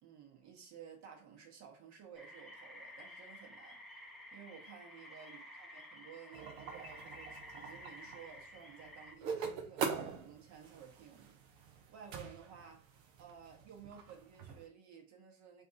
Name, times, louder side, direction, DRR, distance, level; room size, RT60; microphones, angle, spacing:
voice 1, 0.0-3.8 4.3-11.4 11.9-15.6, right 7 dB, 40° right, 1.3 m, -55 dB
sound 1, 2.1-9.1, left 1 dB, ahead, 0.7 m, -53 dB
sound 2, 6.3-14.7, right 6 dB, 60° right, 0.9 m, -44 dB
3.3 x 2.6 x 3.8 m
hypercardioid pair, 80°, 42 cm